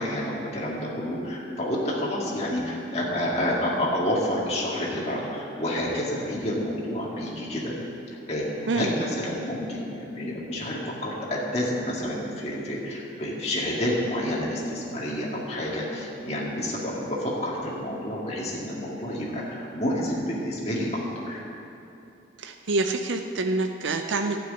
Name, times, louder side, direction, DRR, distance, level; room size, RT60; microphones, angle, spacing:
voice 1, 0.0-7.7 8.3-21.4, left 1 dB, 35° left, -5 dB, 2.0 m, -29 dB
voice 2, 22.4-24.4, right 3 dB, 75° right, 5 dB, 0.6 m, -26 dB
12.0 x 6.3 x 9.2 m, 2.8 s
head